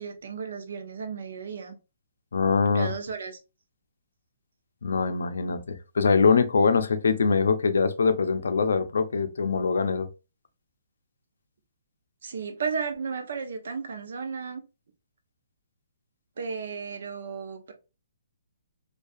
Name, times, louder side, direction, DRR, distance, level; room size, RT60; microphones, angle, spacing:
voice 1, 0.0-1.8 2.7-3.4 12.2-14.6 16.4-17.7, right 5 dB, 65° right, 0.6 m, -34 dB
voice 2, 2.3-2.9 4.8-10.1, left 5 dB, 80° left, 0.4 m, -23 dB
2.4 x 2.3 x 2.5 m
hypercardioid pair, 170°, 0 cm